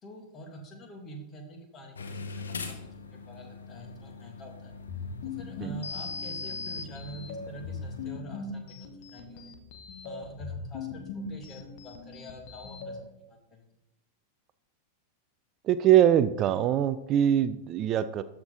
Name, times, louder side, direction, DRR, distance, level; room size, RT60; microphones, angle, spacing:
voice 1, 0.0-4.7 5.2-9.5 10.0-13.6, right 1 dB, 25° left, 3 dB, 2.1 m, -46 dB
sound 1, 2.0-8.1, left 4 dB, 70° left, 0.9 m, -40 dB
sound 2, 4.7-13.0, left 4 dB, 50° left, 1.2 m, -41 dB
voice 2, 15.6-18.2, right 11 dB, 35° right, 13 dB, 0.4 m, -23 dB
13.0 x 5.9 x 3.8 m, 0.89 s
figure-of-eight pair, 90°, 0 cm